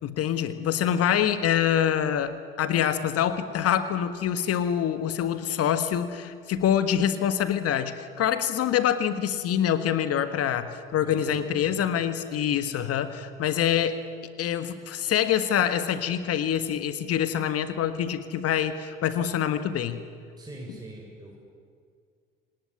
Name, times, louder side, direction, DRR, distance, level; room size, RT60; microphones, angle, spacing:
voice 1, 0.0-14.0 14.4-20.0, left 9 dB, 55° left, 11 dB, 1.7 m, -25 dB
voice 2, 11.0-12.0 20.4-21.3, right 1 dB, 15° right, -3 dB, 7.0 m, -43 dB
27.0 x 19.0 x 10.0 m, 2.1 s
hypercardioid pair, 60°, 30 cm